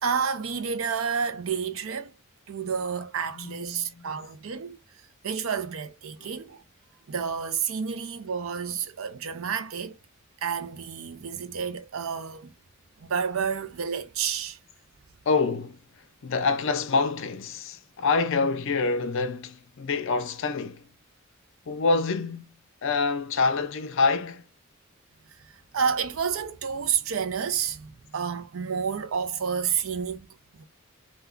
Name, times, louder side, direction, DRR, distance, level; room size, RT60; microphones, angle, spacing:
voice 1, 0.0-2.1 2.5-4.8 5.2-6.6 7.1-10.0 10.4-12.5 13.0-14.6 25.7-30.3 30.6-30.7, right 6 dB, 70° right, 0.5 m, -30 dB
voice 2, 3.3-4.1 6.2-6.3 15.3-15.8 16.2-20.9 21.7-22.5 22.8-24.4, left 4 dB, 60° left, 0.4 m, -26 dB
2.2 x 2.2 x 3.6 m
head